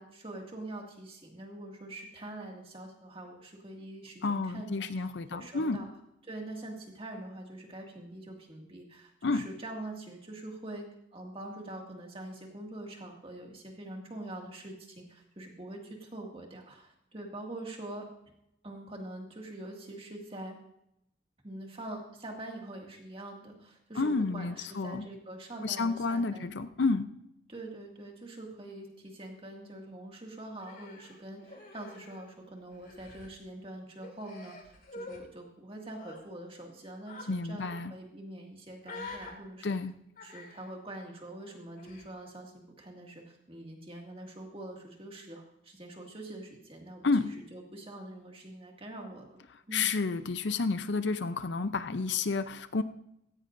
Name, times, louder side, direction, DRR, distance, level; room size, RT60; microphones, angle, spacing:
voice 1, 0.0-4.9 5.3-5.9 6.3-10.8 11.1-18.1 18.6-20.6 21.4-26.5 27.5-39.8 40.2-47.1 47.5-49.4 49.7-49.9, right 1 dB, 30° right, 1 dB, 2.1 m, -44 dB
voice 2, 4.2-5.9 9.2-9.4 23.9-25.1 25.6-27.1 37.3-37.9 39.6-39.9 47.0-47.3 49.7-52.8, left 3 dB, 65° left, 11 dB, 0.6 m, -30 dB
Human voice, 30.6-32.4 32.7-33.3 34.0-35.2 35.9-36.2 37.1-37.3 37.6-37.8 38.8-39.3 40.2-40.7 41.8-42.1, left 3 dB, 45° left, 2.2 m, -46 dB
16.0 x 15.5 x 2.6 m, 0.81 s
head